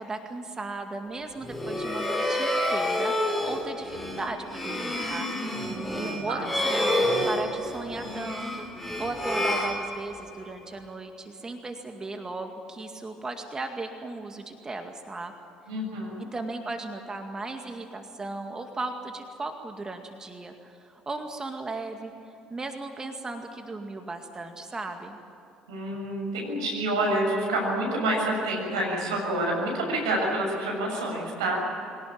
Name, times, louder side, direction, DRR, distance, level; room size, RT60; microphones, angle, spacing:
voice 1, 0.0-5.3 5.9-15.3 16.3-22.1 22.5-25.2, right 3 dB, 25° right, 5 dB, 2.1 m, -36 dB
sound 1, 1.4-10.5, left 1 dB, 5° left, 4.4 m, -29 dB
voice 2, 5.7-6.4 15.7-16.3 25.7-31.6, right 1 dB, 80° right, 0 dB, 7.0 m, -28 dB
24.0 x 18.0 x 8.8 m, 2.9 s
hypercardioid pair, 60°, 3 cm